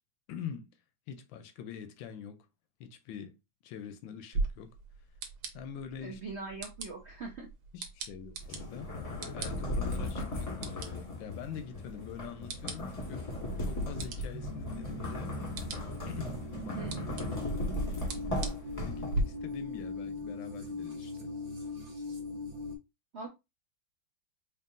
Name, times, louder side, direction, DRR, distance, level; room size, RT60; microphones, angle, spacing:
voice 1, 0.3-0.7 1.1-2.5 2.8-3.4 3.6-4.7 5.5-6.2 7.7-8.9 9.3-13.3 13.6-15.3 16.1-16.8 17.1-17.7 18.7-21.3, left 7 dB, 75° left, 1.3 m, -44 dB
sound 1, 4.3-19.2, right 3 dB, 85° right, 1.7 m, -42 dB
voice 2, 6.0-7.5 16.7-17.0 23.1-23.3, right 4 dB, 65° right, 0.6 m, -41 dB
sound 2, 8.4-19.4, left 1 dB, 20° left, 1.1 m, -37 dB
sound 3, 14.3-22.8, left 2 dB, 25° right, 0.8 m, -41 dB
4.6 x 3.2 x 2.5 m
omnidirectional pair, 2.2 m